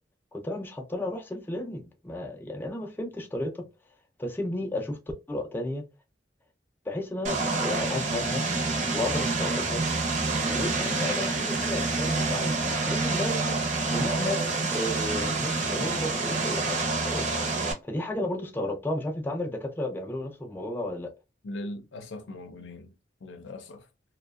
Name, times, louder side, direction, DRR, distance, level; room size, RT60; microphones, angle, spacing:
voice 1, 0.3-3.6 4.2-5.0 5.3-5.8 6.9-8.4 8.9-9.8 10.5-13.6 13.9-14.4 14.7-17.3 17.8-21.1, left 1 dB, 10° left, 0.3 m, -33 dB
Vehicle, 7.2-17.7, right 3 dB, 40° right, 0.6 m, -27 dB
voice 2, 21.4-22.9 23.2-23.8, left 1 dB, 85° left, 0.5 m, -39 dB
2.6 x 2.1 x 2.3 m
head